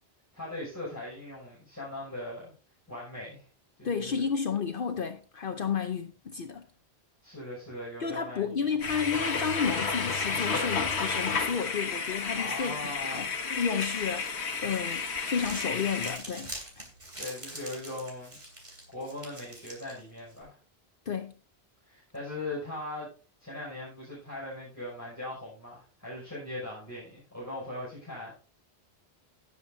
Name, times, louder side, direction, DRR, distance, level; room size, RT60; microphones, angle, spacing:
voice 1, 0.3-2.5 2.9-3.5 3.8-4.2 7.2-8.7 12.3-13.3 17.2-18.4 18.9-20.6 21.8-23.1 23.4-28.3, left 1 dB, 15° left, 6.0 m, -40 dB
voice 2, 3.8-6.6 8.0-16.5 21.1-21.3, left 6 dB, 60° left, 0.9 m, -32 dB
sound 1, 8.8-16.2, left 4 dB, 85° left, 1.6 m, -31 dB
Crumpling crinkling, 15.2-20.4, right 1 dB, 45° right, 3.4 m, -45 dB
17.0 x 7.5 x 2.7 m
omnidirectional pair, 1.1 m